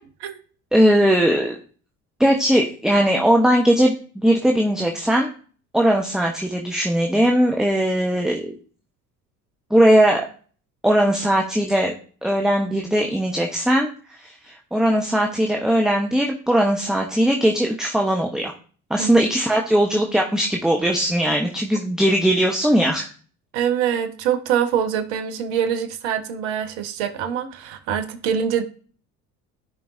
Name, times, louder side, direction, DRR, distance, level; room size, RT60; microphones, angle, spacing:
voice 1, 0.7-1.6 2.2-5.3 5.7-8.5 9.7-10.2 10.8-11.9 12.2-18.5 18.9-23.1, equal, ahead, 1 dB, 1.1 m, -19 dB
voice 2, 23.5-28.6, right 8 dB, 60° right, 8 dB, 1.4 m, -24 dB
13.5 x 5.3 x 2.7 m, 0.42 s
figure-of-eight pair, 55°, 45 cm